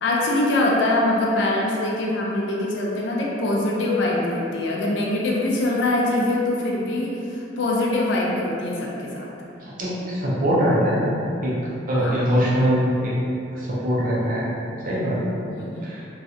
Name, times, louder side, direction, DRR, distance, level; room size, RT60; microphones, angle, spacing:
voice 1, 0.0-9.3 12.0-12.4 15.5-15.9, left 2 dB, 70° left, -3 dB, 0.4 m, -23 dB
voice 2, 9.6-11.1 11.4-11.5 11.9-13.1 13.6-14.5 14.9-15.2 15.8-16.0, equal, 45° right, -7 dB, 0.6 m, -22 dB
3.1 x 2.4 x 2.7 m, 2.8 s
head